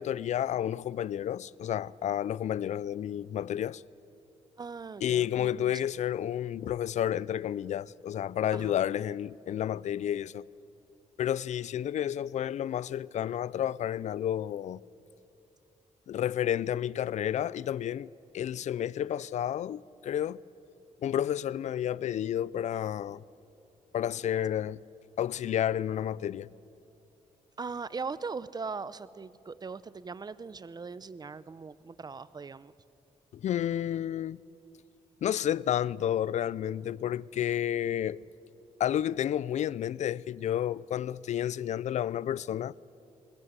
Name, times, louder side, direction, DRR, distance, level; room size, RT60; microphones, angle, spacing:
voice 1, 0.0-3.8 5.0-10.4 11.2-14.8 16.1-18.1 18.3-20.4 21.0-23.2 23.9-24.8 25.2-26.5 33.3-34.4 35.2-38.2 38.8-42.7, left 10 dB, 65° left, 0.4 m, -31 dB
voice 2, 4.6-5.7 8.5-8.8 27.6-32.7, right 4 dB, 30° right, 0.7 m, -40 dB
20.5 x 20.5 x 8.1 m
cardioid pair, 85°, 13 cm